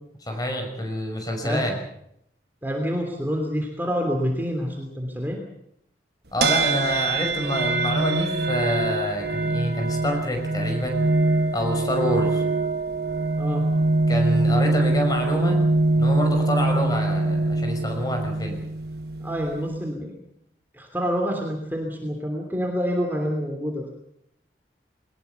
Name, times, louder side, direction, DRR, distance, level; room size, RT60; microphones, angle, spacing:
voice 1, 0.3-1.8 6.3-11.0 11.5-12.4 14.1-15.6 16.0-18.6, equal, 20° left, 3 dB, 5.8 m, -27 dB
voice 2, 2.6-5.4 13.4-13.7 19.2-20.1 20.7-23.9, equal, 10° right, 2 dB, 3.1 m, -27 dB
sound 1, 6.4-19.9, right 2 dB, 55° right, 1.5 m, -23 dB
22.0 x 20.5 x 7.0 m, 0.75 s
head